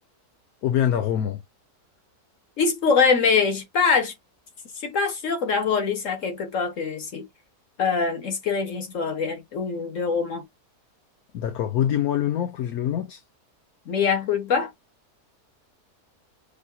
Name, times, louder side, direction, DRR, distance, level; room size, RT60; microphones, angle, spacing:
voice 1, 0.6-1.4 11.3-13.2, left 10 dB, 70° left, 1.1 m, -24 dB
voice 2, 2.6-4.1 4.8-7.3 7.8-10.4 13.9-14.7, left 5 dB, 55° left, 1.6 m, -23 dB
6.4 x 2.8 x 2.3 m
omnidirectional pair, 1.7 m